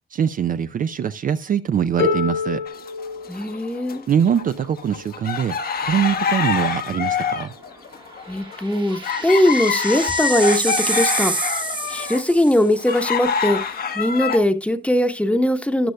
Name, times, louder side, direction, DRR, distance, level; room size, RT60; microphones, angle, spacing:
voice 1, 0.1-2.6 4.1-7.5, right 8 dB, 45° right, 0.4 m, -23 dB
Harp, 2.0-7.8 8.8-8.9, left 4 dB, 75° left, 2.9 m, -30 dB
sound 1, 2.7-4.0 4.4-14.4, left 7 dB, 50° left, 1.0 m, -26 dB
voice 2, 3.3-4.0 8.3-11.3 11.9-15.9, left 1 dB, 5° left, 1.0 m, -20 dB
sound 2, 6.2-6.3 6.6-6.7 8.1-12.8, right 3 dB, 25° right, 1.1 m, -28 dB
13.0 x 9.5 x 2.2 m
cardioid pair, 90°, 20 cm